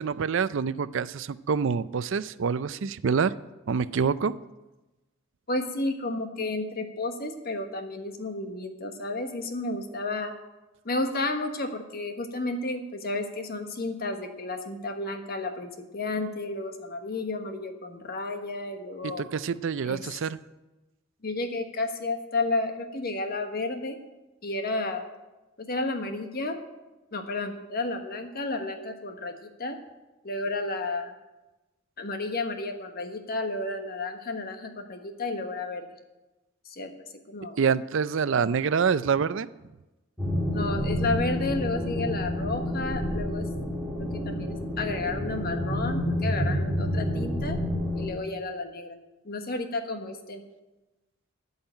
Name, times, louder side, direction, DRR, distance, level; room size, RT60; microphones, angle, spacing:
voice 1, 0.0-3.3 3.7-4.3 19.0-20.4 37.6-39.5, right 6 dB, 65° right, 15 dB, 0.5 m, -26 dB
voice 2, 5.5-10.3 10.8-19.2 19.8-20.0 21.2-24.0 24.4-25.0 25.6-26.6 27.1-29.8 30.2-31.1 32.0-35.9 36.7-36.9 37.3-37.6 40.5-43.4 44.2-47.6 48.0-49.0 49.2-50.4, left 2 dB, 50° left, 6 dB, 1.3 m, -32 dB
sound 1, 40.2-48.1, left 1 dB, 5° right, 2.1 m, -29 dB
13.5 x 5.6 x 9.0 m, 1.1 s
head